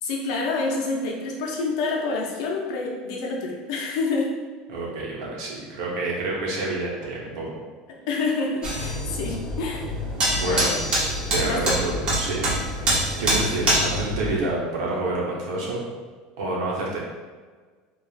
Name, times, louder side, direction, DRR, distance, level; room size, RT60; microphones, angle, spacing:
voice 1, 0.0-4.3 8.1-9.9 10.5-10.8 11.4-11.8, left 3 dB, 80° left, -1 dB, 0.6 m, -27 dB
voice 2, 4.7-7.5 10.3-10.7 11.3-12.4 13.2-15.8 16.4-17.0, right 2 dB, 80° right, -4 dB, 0.9 m, -28 dB
sound 1, 8.6-14.3, right 1 dB, 30° right, 0.8 m, -25 dB
3.2 x 2.4 x 2.3 m, 1.4 s
cardioid pair, 155°, 3 cm